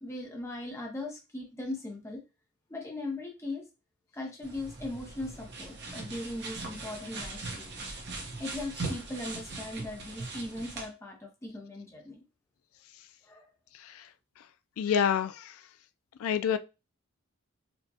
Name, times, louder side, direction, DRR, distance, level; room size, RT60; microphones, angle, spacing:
voice 1, 0.0-2.2 2.7-3.6 4.1-7.8 8.4-12.2 13.3-13.4, left 2 dB, 15° left, 0.8 m, -39 dB
sound 1, 4.4-10.9, right 3 dB, 55° right, 1.0 m, -40 dB
voice 2, 14.8-15.6 16.2-16.6, left 8 dB, 80° left, 0.3 m, -28 dB
4.4 x 2.2 x 2.8 m
head